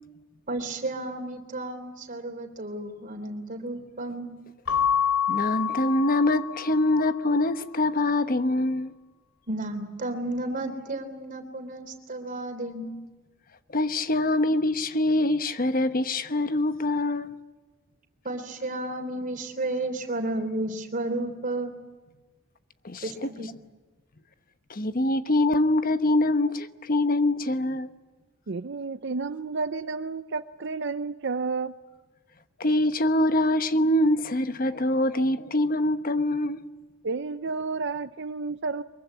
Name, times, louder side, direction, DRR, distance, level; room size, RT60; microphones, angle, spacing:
voice 1, 0.5-4.4 9.5-13.0 18.2-21.7 23.0-23.5, right 2 dB, 40° right, 3.5 m, -32 dB
Keyboard (musical) / Bell, 4.7-7.1, left 8 dB, 85° left, 3.6 m, -27 dB
voice 2, 5.3-8.9 13.7-17.3 22.8-23.0 24.7-27.9 32.6-36.6, left 1 dB, 45° left, 1.1 m, -24 dB
voice 3, 28.5-31.7 37.0-38.8, right 4 dB, 60° right, 0.7 m, -31 dB
23.5 x 22.5 x 8.5 m
head